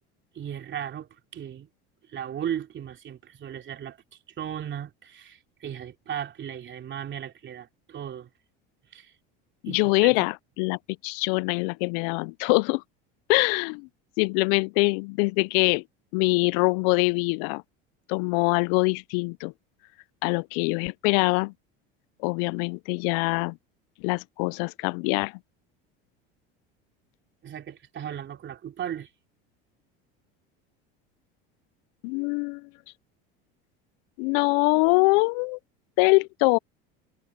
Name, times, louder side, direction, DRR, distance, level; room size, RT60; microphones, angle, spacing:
voice 1, 0.3-1.7 2.1-4.0 4.4-8.3 8.9-9.1 9.7-10.2 27.4-29.1, right 9 dB, 40° right, 3.0 m, -36 dB
voice 2, 9.6-12.8 13.3-13.9 14.2-15.8 16.1-17.6 18.1-19.5 20.2-21.5 22.2-23.6 24.0-25.4 32.0-32.7 34.2-35.6 36.0-36.6, left 29 dB, 70° left, 0.5 m, -24 dB
supercardioid pair, 100°, 30 cm